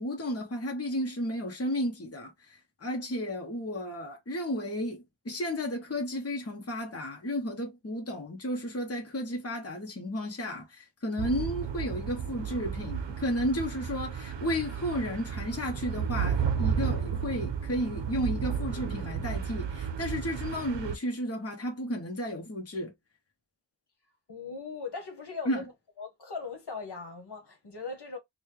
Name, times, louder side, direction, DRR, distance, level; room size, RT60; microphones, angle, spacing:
voice 1, 0.0-22.9 25.4-25.7, equal, 35° left, 1.1 m, -33 dB
sound 1, 11.2-20.9, right 7 dB, 75° right, 0.7 m, -33 dB
voice 2, 24.3-25.7 26.0-28.2, left 4 dB, 65° left, 1.3 m, -39 dB
4.1 x 2.3 x 3.2 m
wide cardioid pair, 80°, 44 cm